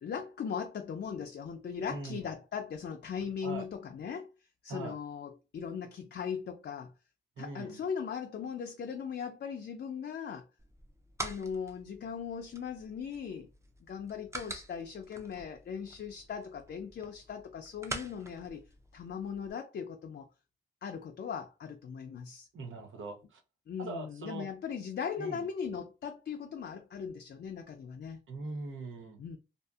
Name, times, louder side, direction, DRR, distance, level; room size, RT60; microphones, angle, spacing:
voice 1, 0.0-4.3 4.6-6.9 7.4-10.5 11.2-13.5 13.8-18.6 18.9-20.3 20.8-22.5 23.7-28.2 29.2-29.4, left 7 dB, 55° left, 0.4 m, -39 dB
voice 2, 1.9-2.3 3.4-3.7 4.7-5.0 7.4-7.8 22.5-23.4 23.8-24.5 25.2-25.4 28.3-29.2, right 3 dB, 75° right, 0.7 m, -41 dB
sound 1, 10.6-19.5, right 2 dB, 15° right, 0.5 m, -46 dB
2.6 x 2.4 x 2.3 m
cardioid pair, 70°, 20 cm